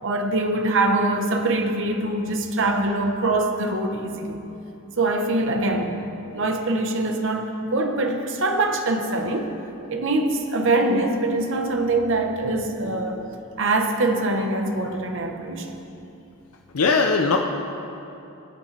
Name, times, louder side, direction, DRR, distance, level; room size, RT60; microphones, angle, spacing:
voice 1, 0.0-4.4 5.0-6.0 6.3-9.6 9.9-13.3 13.6-15.8, right 2 dB, 60° right, 4 dB, 1.0 m, -23 dB
voice 2, 12.8-13.2 16.7-17.4, left 4 dB, 85° left, 3 dB, 0.7 m, -21 dB
19.0 x 8.3 x 3.3 m, 2.8 s
head